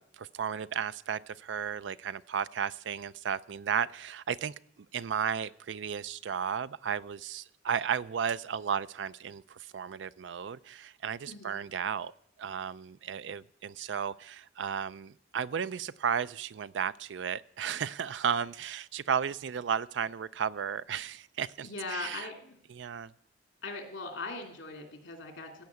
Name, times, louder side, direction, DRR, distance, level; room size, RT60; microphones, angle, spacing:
voice 1, 0.0-4.5 4.9-12.1 12.4-22.3 22.7-23.1, right 7 dB, 80° right, 17 dB, 0.4 m, -34 dB
voice 2, 11.3-11.6 21.6-22.6 23.6-25.6, left 3 dB, 90° left, 3 dB, 2.7 m, -40 dB
15.5 x 5.8 x 8.3 m, 0.67 s
head